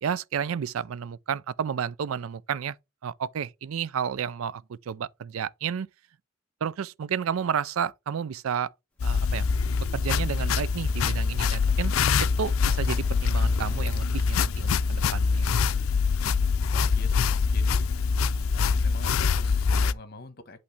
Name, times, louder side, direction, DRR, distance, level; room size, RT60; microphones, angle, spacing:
voice 1, 0.0-2.8 3.0-5.9 6.6-8.7 9.0-9.4 9.8-11.9 12.4-15.5, right 7 dB, 90° right, 0.4 m, -31 dB
sound 1, 9.0-19.9, left 5 dB, 90° left, 0.5 m, -24 dB
sound 2, 9.2-13.9, right 1 dB, 5° left, 1.4 m, -50 dB
voice 2, 16.7-17.9 18.5-20.6, left 3 dB, 50° left, 1.2 m, -44 dB
8.5 x 3.2 x 5.6 m
head